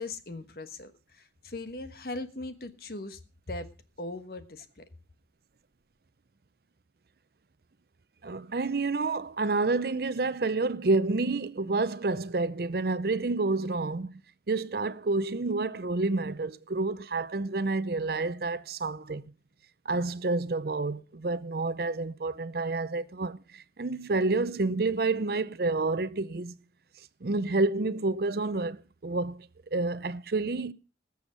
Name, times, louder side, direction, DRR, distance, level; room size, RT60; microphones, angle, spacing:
voice 1, 0.0-3.2 3.5-3.7 4.0-4.8, left 2 dB, 55° left, 1.3 m, -39 dB
voice 2, 8.2-14.2 14.5-19.2 19.8-26.6 27.2-30.7, right 3 dB, 60° right, 0.6 m, -29 dB
20.0 x 7.1 x 5.0 m
head